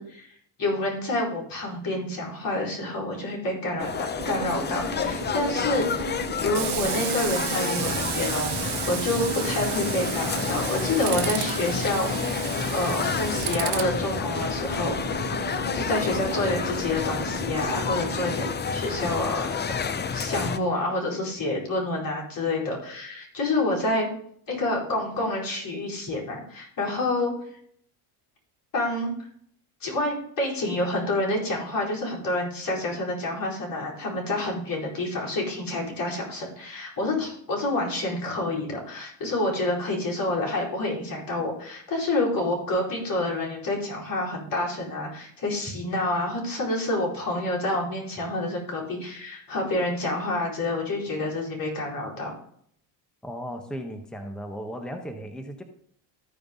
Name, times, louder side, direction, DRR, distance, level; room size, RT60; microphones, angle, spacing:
voice 1, 0.0-12.4 12.7-15.3 15.7-19.6 20.1-24.1 24.5-27.3 28.7-29.2 29.8-52.4, left 2 dB, 40° left, -3 dB, 4.6 m, -28 dB
sound 1, 3.8-20.6, left 6 dB, 20° left, 0.5 m, -29 dB
Tools, 4.2-18.5, right 11 dB, 50° right, 1.0 m, -34 dB
voice 2, 53.2-55.6, equal, ahead, 5 dB, 1.0 m, -36 dB
14.0 x 5.1 x 3.9 m, 0.65 s
supercardioid pair, 95°, 49 cm